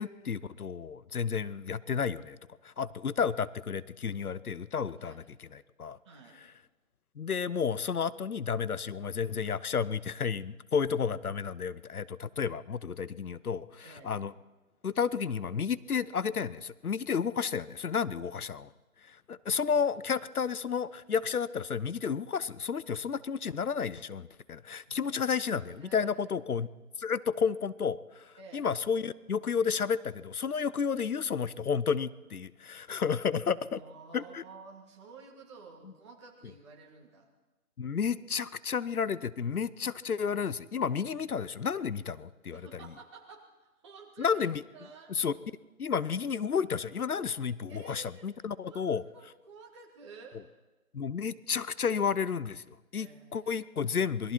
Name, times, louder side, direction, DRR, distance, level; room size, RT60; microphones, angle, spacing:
voice 1, 0.0-2.4 2.6-5.2 5.5-6.0 7.2-14.3 14.8-18.7 19.1-26.7 27.0-33.8 34.1-34.4 37.8-42.6 44.2-44.6 45.2-45.3 45.8-49.0 50.9-54.3, left 6 dB, 75° left, 18 dB, 0.8 m, -31 dB
voice 2, 6.0-6.4 13.8-14.1 24.8-25.4 25.6-26.1 28.4-28.7 33.6-37.3 42.5-44.4 44.7-45.1 47.7-48.2 48.6-50.4 52.9-53.5 53.8-54.0, right 4 dB, 20° right, -1 dB, 2.5 m, -52 dB
27.0 x 21.5 x 4.5 m, 1.1 s
figure-of-eight pair, 165°, 44 cm